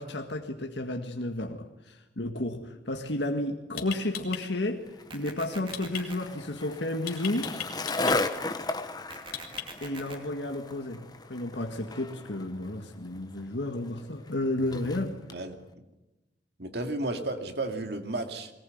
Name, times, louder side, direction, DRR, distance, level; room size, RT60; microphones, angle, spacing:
voice 1, 0.0-4.9 5.1-7.6 9.8-15.2, left 1 dB, 80° left, 1.8 m, -32 dB
sound 1, 3.2-3.3 3.8-4.4 5.7-6.0 7.1-8.2 9.3-9.9, left 11 dB, 55° left, 3.1 m, -36 dB
Skateboard, 4.9-15.4, left 3 dB, 25° left, 1.2 m, -36 dB
sound 2, 5.1-6.1 9.1-10.1, right 3 dB, 30° right, 2.6 m, -44 dB
voice 2, 16.6-18.5, right 2 dB, 65° right, 2.5 m, -33 dB
22.0 x 19.0 x 9.4 m
head